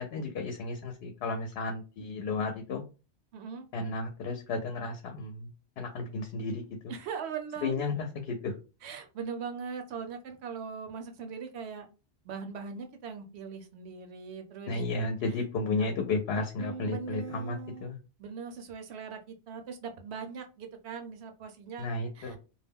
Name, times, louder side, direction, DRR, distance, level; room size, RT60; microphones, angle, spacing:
voice 1, 0.0-2.8 3.7-6.9 7.6-8.5 14.7-18.0 21.8-22.4, left 3 dB, 70° left, 4 dB, 0.8 m, -33 dB
voice 2, 3.3-3.7 6.9-7.9 8.8-11.9 12.2-14.7 15.8-15.9 16.6-17.9 18.2-21.9 22.1-22.4, right 6 dB, 75° right, 6 dB, 0.8 m, -40 dB
2.3 x 2.1 x 3.4 m, 0.32 s
omnidirectional pair, 1.2 m